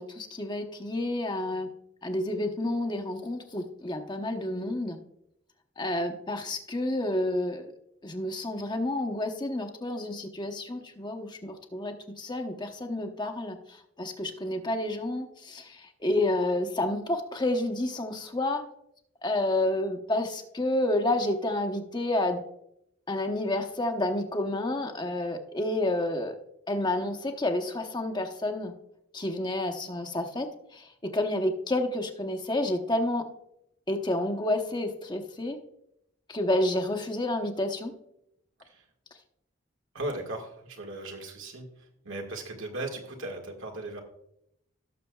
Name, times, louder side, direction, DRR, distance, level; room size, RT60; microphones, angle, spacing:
voice 1, 0.0-1.7 2.0-5.0 5.8-7.7 8.0-18.6 19.2-22.4 23.1-26.3 26.7-28.7 29.1-33.2 33.9-35.6 36.3-37.9, left 1 dB, 20° left, 5 dB, 0.9 m, -30 dB
voice 2, 39.9-41.7 42.0-44.0, right 2 dB, 85° right, 2 dB, 1.8 m, -37 dB
17.5 x 6.7 x 2.3 m, 0.77 s
head